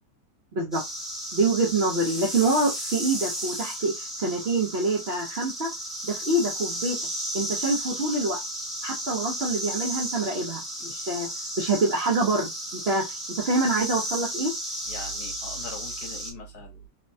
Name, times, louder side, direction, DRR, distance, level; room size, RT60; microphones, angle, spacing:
voice 1, 0.5-0.8 1.3-5.7 6.0-7.0 7.3-8.4 8.8-10.6 10.9-11.3 11.6-14.5, right 2 dB, 60° right, 0.6 m, -26 dB
sound 1, 0.7-16.3, equal, ahead, 0.5 m, -34 dB
voice 2, 14.9-16.9, equal, 65° left, 1.3 m, -40 dB
3.3 x 2.1 x 2.6 m
omnidirectional pair, 1.9 m